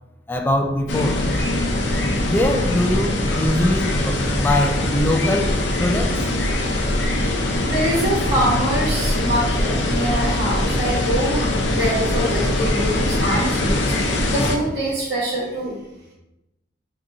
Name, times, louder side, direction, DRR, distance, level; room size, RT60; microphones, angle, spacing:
voice 1, 0.3-1.3 2.2-6.3, left 1 dB, 10° left, 0.3 m, -22 dB
sound 1, 0.9-14.6, left 1 dB, 75° left, 0.6 m, -22 dB
voice 2, 7.6-14.0 14.3-15.8, right 1 dB, 75° right, 1.2 m, -24 dB
4.7 x 2.8 x 2.5 m
head